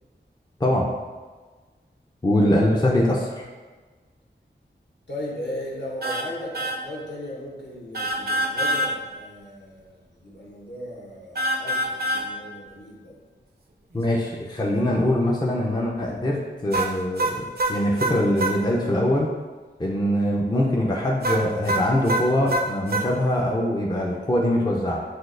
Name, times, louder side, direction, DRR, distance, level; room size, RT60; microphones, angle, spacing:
voice 1, 2.2-3.4 13.9-19.3 19.8-25.0, left 1 dB, 20° left, -2 dB, 0.5 m, -23 dB
voice 2, 5.1-13.2, left 1 dB, 60° left, -5 dB, 1.1 m, -37 dB
sound 1, 6.0-6.3 6.5-6.8 7.9-8.9 11.4-12.3 16.7-18.6 21.2-23.1, right 1 dB, 55° right, 0.5 m, -25 dB
6.0 x 2.4 x 2.5 m, 1.4 s
wide cardioid pair, 55°, 20 cm